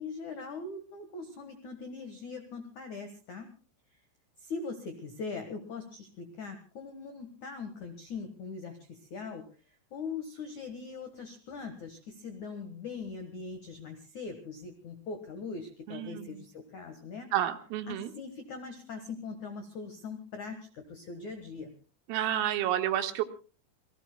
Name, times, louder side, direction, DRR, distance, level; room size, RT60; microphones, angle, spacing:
voice 1, 0.0-3.5 4.4-17.3 17.9-21.7, left 4 dB, 75° left, 7 dB, 1.7 m, -41 dB
voice 2, 15.9-16.4 17.3-18.1 22.1-23.2, right 11 dB, 85° right, 8 dB, 4.0 m, -30 dB
28.0 x 19.0 x 2.2 m, 0.36 s
omnidirectional pair, 5.9 m